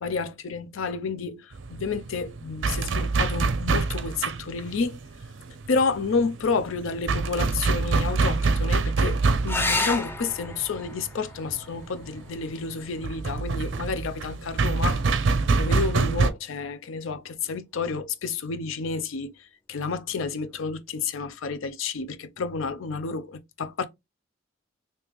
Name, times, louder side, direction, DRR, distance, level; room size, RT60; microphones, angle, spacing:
voice 1, 0.0-5.0 5.7-15.0 15.6-23.8, left 4 dB, 75° left, 0.5 m, -30 dB
sound 1, 1.5-16.3, right 4 dB, 65° right, 0.5 m, -26 dB
sound 2, 9.5-14.5 16.4-17.0 20.5-20.6 20.9-21.0, left 2 dB, 10° left, 0.3 m, -33 dB
3.4 x 2.8 x 3.0 m
head